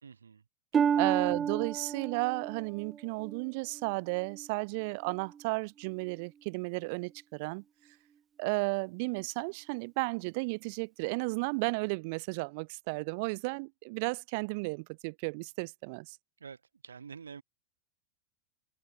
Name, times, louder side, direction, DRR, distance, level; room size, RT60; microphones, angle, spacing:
voice 1, 0.0-0.4 0.9-1.2 16.4-17.4, right 6 dB, 70° right, 5.0 m, -48 dB
Harp, 0.7-4.5 5.0-5.4 6.1-6.2, right 7 dB, 20° right, 0.7 m, -32 dB
voice 2, 1.0-7.6 8.4-16.2, right 30 dB, 45° right, 1.0 m, -33 dB
figure-of-eight pair, 90°, 0 cm